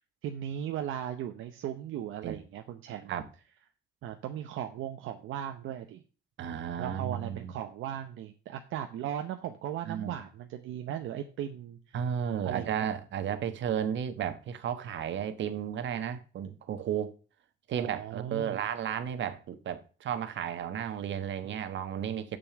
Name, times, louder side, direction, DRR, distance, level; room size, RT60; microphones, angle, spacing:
voice 1, 0.2-3.1 4.0-6.0 6.8-12.0 12.4-12.9 17.7-18.6, right 10 dB, 85° right, 0.8 m, -37 dB
voice 2, 6.4-7.5 9.8-10.2 11.9-17.1 17.7-22.4, right 9 dB, 70° right, 1.2 m, -33 dB
7.3 x 6.9 x 6.8 m
cardioid pair, 90°, 20 cm